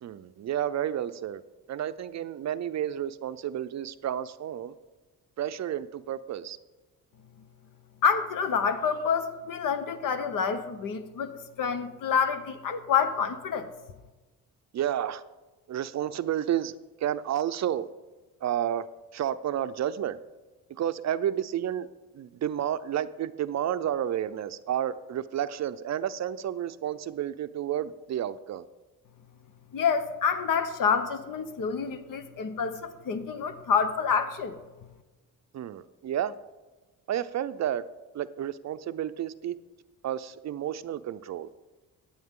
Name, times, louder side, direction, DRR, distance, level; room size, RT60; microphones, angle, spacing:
voice 1, 0.0-1.4 1.7-4.7 5.4-6.6 14.7-15.2 15.7-17.9 18.4-18.9 19.1-20.2 20.7-21.9 22.1-28.6 35.5-36.4 37.1-37.9 38.1-39.6 40.0-41.5, right 10 dB, 50° right, 12 dB, 0.5 m, -31 dB
voice 2, 8.0-11.3 11.6-13.7 29.7-34.6, left 6 dB, 65° left, 10 dB, 1.1 m, -27 dB
15.0 x 8.7 x 3.7 m, 1.2 s
cardioid pair, 105°, 35 cm